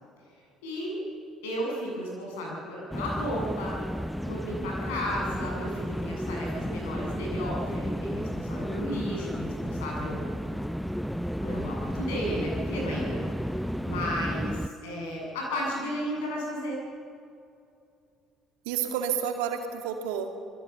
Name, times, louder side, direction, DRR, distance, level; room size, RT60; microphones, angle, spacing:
voice 1, 0.6-1.0 1.4-3.8 4.2-10.2 11.4-16.8, equal, 75° left, -2 dB, 7.9 m, -34 dB
sound 1, 2.9-14.7, equal, ahead, 0.7 m, -33 dB
voice 2, 13.9-14.3 18.6-20.4, right 8 dB, 70° right, 4 dB, 2.3 m, -31 dB
26.5 x 21.5 x 7.0 m, 2.6 s
figure-of-eight pair, 50°, 0 cm